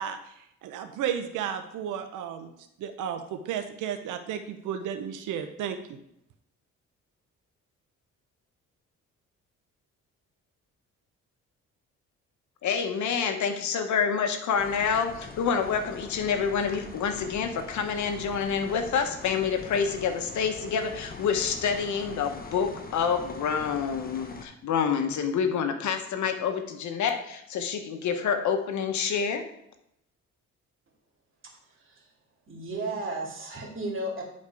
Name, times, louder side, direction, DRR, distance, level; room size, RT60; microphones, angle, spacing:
voice 1, 0.0-2.5 2.8-6.0, right 8 dB, 85° right, 8 dB, 0.8 m, -33 dB
voice 2, 12.6-29.4, left 6 dB, 70° left, 7 dB, 1.0 m, -27 dB
sound 1, 14.6-24.4, left 4 dB, 30° left, 1.0 m, -43 dB
voice 3, 31.4-32.1 32.5-34.2, right 2 dB, 40° right, -1 dB, 2.6 m, -34 dB
9.8 x 4.2 x 4.8 m, 0.78 s
cardioid pair, 90°, 30 cm